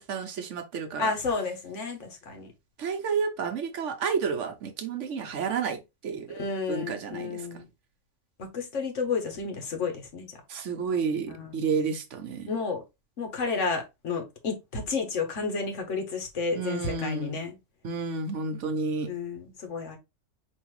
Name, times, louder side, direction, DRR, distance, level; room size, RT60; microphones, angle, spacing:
voice 1, 0.0-1.1 2.8-6.3 6.7-7.5 10.5-12.5 16.5-17.4 17.8-19.1, right 5 dB, 70° right, 1.1 m, -31 dB
voice 2, 1.0-2.5 6.3-7.7 8.5-10.3 11.3-11.6 12.5-12.8 13.2-17.6 19.0-20.0, left 4 dB, 65° left, 1.4 m, -31 dB
4.5 x 3.2 x 3.0 m
omnidirectional pair, 1.4 m